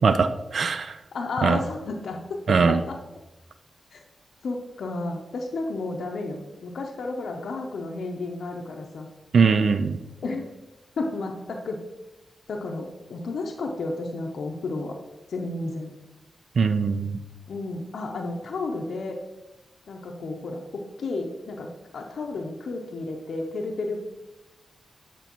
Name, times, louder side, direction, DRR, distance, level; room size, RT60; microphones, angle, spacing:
voice 1, 0.0-0.9 1.4-1.6 2.5-2.8 9.3-10.0 16.6-17.2, right 5 dB, 65° right, 11 dB, 0.3 m, -21 dB
voice 2, 1.1-2.2 2.5-3.0 3.9-4.0 4.4-9.1 10.2-10.5 11.0-11.8 12.5-14.9 15.3-15.9 17.5-19.2 19.9-21.7 21.9-24.0, left 3 dB, 75° left, 1 dB, 0.6 m, -32 dB
9.2 x 4.4 x 2.9 m, 1.0 s
cardioid pair, 65°, 0 cm